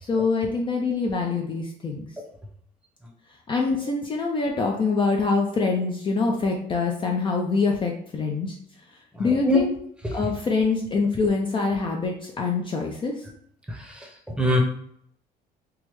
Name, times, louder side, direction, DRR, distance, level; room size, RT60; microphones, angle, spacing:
voice 1, 0.0-2.1 3.5-8.6 9.2-9.7 10.1-13.2, left 4 dB, 30° left, 1 dB, 0.4 m, -25 dB
voice 2, 9.1-9.6 13.7-14.1 14.4-14.6, left 1 dB, 5° right, 0 dB, 0.7 m, -23 dB
3.4 x 2.0 x 3.0 m, 0.67 s
cardioid pair, 110°, 17 cm